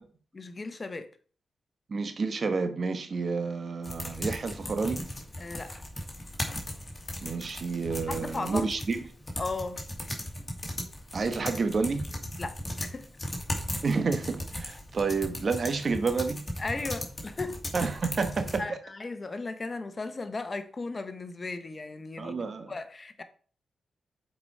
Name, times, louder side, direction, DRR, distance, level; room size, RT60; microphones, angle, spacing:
voice 1, 0.3-1.1 5.4-5.7 8.1-8.7 9.4-9.8 12.4-13.1 16.6-17.6 18.6-23.2, left 3 dB, 45° left, 1.1 m, -36 dB
voice 2, 1.9-5.1 7.2-9.0 11.1-12.0 13.8-16.4 17.7-18.8 22.2-22.7, right 4 dB, 55° right, 1.2 m, -29 dB
sound 1, 3.8-18.6, left 1 dB, 30° left, 2.5 m, -37 dB
7.2 x 4.8 x 4.8 m
supercardioid pair, 40°, 0 cm